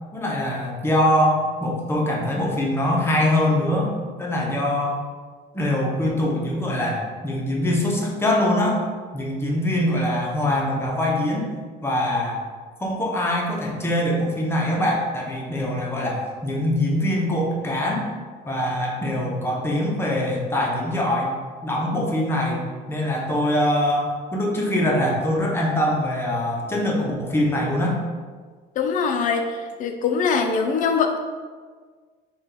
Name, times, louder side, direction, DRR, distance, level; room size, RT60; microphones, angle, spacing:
voice 1, 0.1-3.9 4.2-5.0 5.5-8.8 9.1-11.5 11.8-12.4 12.8-18.1 18.5-21.3 21.6-28.0, left 1 dB, 15° left, -2 dB, 0.7 m, -23 dB
voice 2, 28.8-31.3, left 5 dB, 45° left, 5 dB, 0.5 m, -23 dB
4.1 x 2.4 x 3.7 m, 1.5 s
cardioid pair, 140°, 18 cm